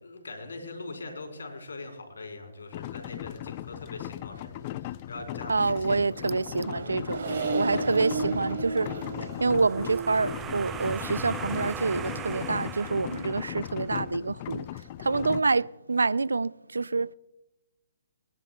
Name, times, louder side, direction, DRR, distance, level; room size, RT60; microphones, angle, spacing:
voice 1, 0.0-6.2 15.0-15.4, left 2 dB, 80° left, 3.6 m, -42 dB
sound 1, 2.7-15.4, left 15 dB, 35° left, 0.3 m, -38 dB
voice 2, 5.5-7.3 7.5-8.9 9.4-14.7 15.0-17.1, right 4 dB, 90° right, 0.3 m, -27 dB
Accelerating revving vroom, 5.7-12.4, right 3 dB, 55° right, 3.3 m, -35 dB
sound 2, 9.3-14.0, right 8 dB, 15° right, 0.5 m, -39 dB
22.0 x 10.5 x 2.3 m
hypercardioid pair, 140°, 0 cm